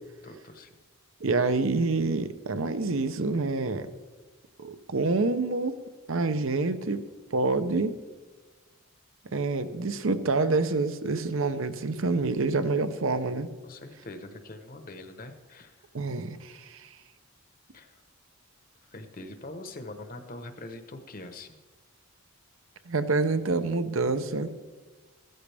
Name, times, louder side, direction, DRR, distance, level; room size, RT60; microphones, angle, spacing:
voice 1, 0.2-0.8 13.6-15.9 17.7-18.0 18.8-21.6, left 2 dB, 40° left, 7 dB, 1.0 m, -43 dB
voice 2, 1.2-3.9 4.6-5.8 6.1-7.0 7.3-8.0 9.3-13.5 15.9-16.9 22.9-24.5, right 3 dB, 65° right, 10 dB, 0.8 m, -27 dB
15.0 x 13.5 x 3.5 m, 1.3 s
head